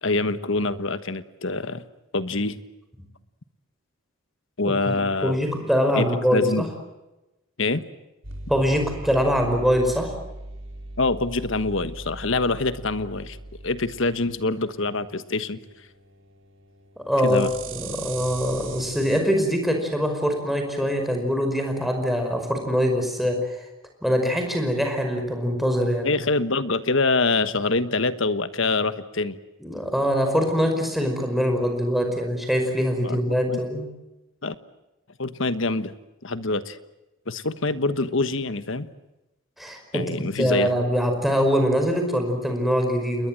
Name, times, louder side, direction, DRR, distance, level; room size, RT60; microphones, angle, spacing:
voice 1, 0.0-1.8 2.1-2.6 4.6-5.3 5.9-6.6 7.6-7.8 11.0-13.4 13.6-15.6 17.2-17.5 26.0-29.4 33.0-33.6 34.4-34.5 35.2-36.0 36.2-36.8 37.3-38.9 39.9-40.7, left 3 dB, 60° left, 12 dB, 1.3 m, -25 dB
voice 2, 4.6-5.0 5.2-6.7 8.5-10.1 17.0-23.7 24.0-26.1 29.6-33.9 39.6-40.1 40.4-43.3, equal, ahead, 4 dB, 5.3 m, -23 dB
sound 1, 8.2-19.2, right 2 dB, 60° right, 4.8 m, -40 dB
29.0 x 21.5 x 7.7 m, 0.98 s
head